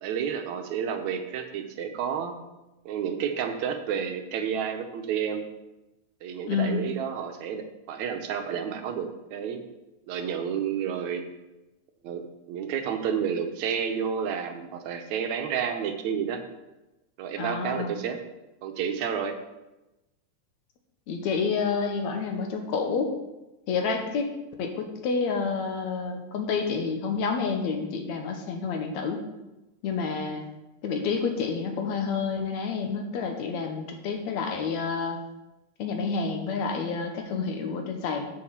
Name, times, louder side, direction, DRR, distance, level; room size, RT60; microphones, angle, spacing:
voice 1, 0.0-2.4 2.9-5.5 6.2-9.6 10.1-11.2 12.0-16.4 17.2-18.2 18.6-19.4, right 7 dB, 75° right, 6 dB, 2.0 m, -30 dB
voice 2, 6.5-6.8 17.4-17.9 21.1-23.1 23.7-24.3 24.6-29.2 29.8-30.5 30.8-35.2 35.8-38.3, left 5 dB, 70° left, 4 dB, 2.2 m, -29 dB
6.9 x 6.1 x 7.1 m, 1.0 s
omnidirectional pair, 3.5 m